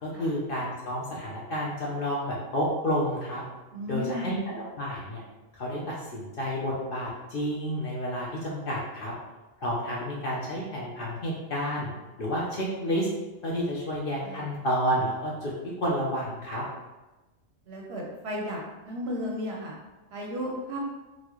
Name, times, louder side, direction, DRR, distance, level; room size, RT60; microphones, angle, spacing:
voice 1, 0.0-3.4 3.9-5.2 5.5-9.1 9.6-11.9 12.2-13.1 13.4-15.5 15.8-16.6, equal, 55° left, -4 dB, 0.6 m, -30 dB
voice 2, 3.7-4.4 14.2-14.5 17.7-19.7 20.1-20.8, left 1 dB, 60° right, -1 dB, 0.8 m, -34 dB
4.0 x 2.1 x 2.9 m, 1.1 s
omnidirectional pair, 1.4 m